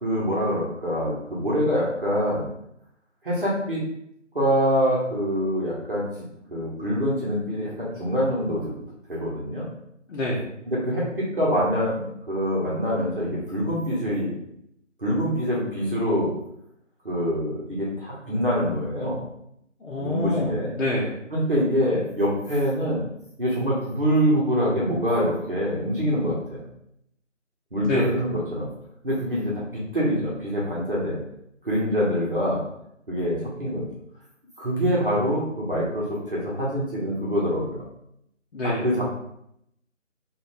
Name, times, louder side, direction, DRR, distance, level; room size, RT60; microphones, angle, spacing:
voice 1, 0.0-2.5 3.2-3.8 4.3-6.0 6.5-8.7 9.1-9.7 10.7-14.3 15.0-16.3 17.0-19.2 20.0-20.7 21.3-23.1 23.4-26.7 27.7-28.7 29.0-31.2 31.6-32.6 33.1-33.9 34.6-37.9 38.8-39.0, equal, 45° right, -6 dB, 0.9 m, -25 dB
voice 2, 10.1-10.5 19.8-21.2 27.8-28.2 38.5-38.9, left 1 dB, 65° left, -4 dB, 0.7 m, -27 dB
2.5 x 2.4 x 3.2 m, 0.76 s
figure-of-eight pair, 170°, 38 cm